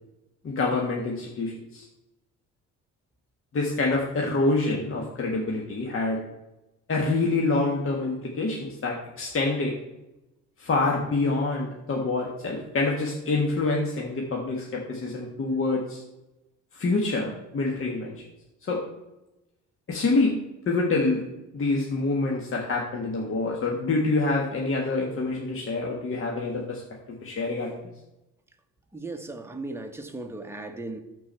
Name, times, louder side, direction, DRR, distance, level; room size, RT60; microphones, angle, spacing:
voice 1, 0.4-1.9 3.5-6.2 6.9-9.7 10.6-16.0 16.7-18.1 18.6-18.8 19.9-20.4 20.7-21.2 21.5-26.8 27.1-27.8, left 3 dB, 45° left, 1.6 m, -26 dB
voice 2, 28.9-31.0, right 2 dB, 10° right, 1.2 m, -36 dB
13.5 x 4.6 x 4.4 m
cardioid pair, 90°, 30 cm